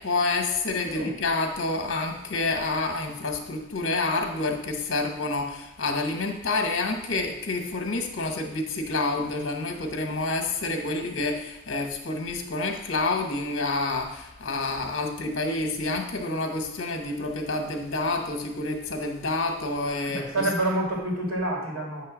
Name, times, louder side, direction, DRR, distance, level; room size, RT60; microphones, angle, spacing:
voice 1, 0.0-20.5, left 3 dB, 55° left, 4 dB, 1.0 m, -28 dB
voice 2, 20.0-22.0, right 1 dB, 85° right, -3 dB, 2.3 m, -28 dB
8.8 x 3.2 x 6.2 m, 0.92 s
head